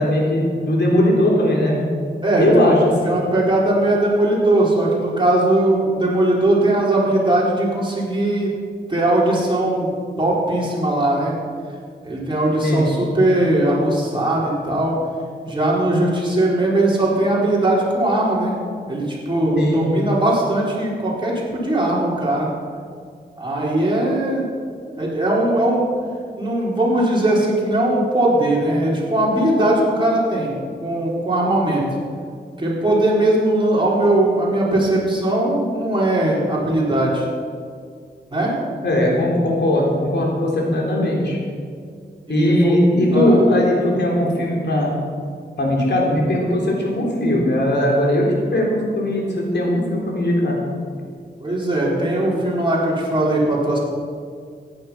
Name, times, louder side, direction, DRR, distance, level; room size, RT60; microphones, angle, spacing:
voice 1, 0.0-1.8 2.4-2.9 12.6-12.9 19.6-19.8 38.8-41.4 42.3-44.9 45.6-50.6, left 1 dB, 75° left, -2 dB, 3.8 m, -19 dB
voice 2, 2.2-2.7 3.0-8.5 8.9-9.9 10.2-11.3 12.0-14.9 15.4-18.5 18.9-22.5 23.4-24.4 24.9-25.9 26.4-31.8 32.6-37.3 38.3-38.5 42.3-42.8 43.1-43.4 51.4-53.8, right 1 dB, 25° right, -5 dB, 4.2 m, -19 dB
15.0 x 10.5 x 5.8 m, 2.1 s
wide cardioid pair, 85°, 18 cm